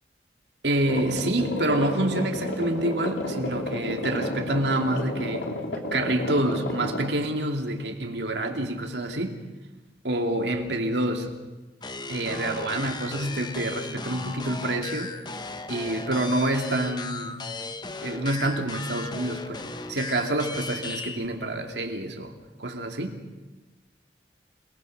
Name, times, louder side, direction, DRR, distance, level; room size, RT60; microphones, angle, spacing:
voice 1, 0.6-5.5 5.9-9.4 10.0-11.3 12.1-15.1 15.7-17.5 18.0-19.6 19.9-22.3 22.6-23.2, right 1 dB, 70° right, 4 dB, 2.5 m, -27 dB
sound 1, 0.9-7.1, left 1 dB, 90° left, 3.1 m, -31 dB
sound 2, 11.8-21.3, left 3 dB, 25° left, 0.9 m, -36 dB
28.0 x 19.5 x 6.5 m, 1.1 s
head